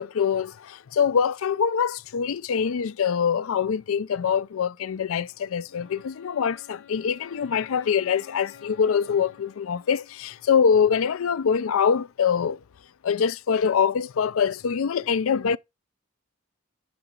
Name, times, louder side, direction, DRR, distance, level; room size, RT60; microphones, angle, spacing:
voice 1, 0.0-12.6 13.0-15.6, left 7 dB, 80° left, 0.4 m, -24 dB
Wind instrument woodwind instrument, 5.7-10.5, left 7 dB, 60° left, 1.3 m, -51 dB
10.5 x 3.9 x 4.4 m
head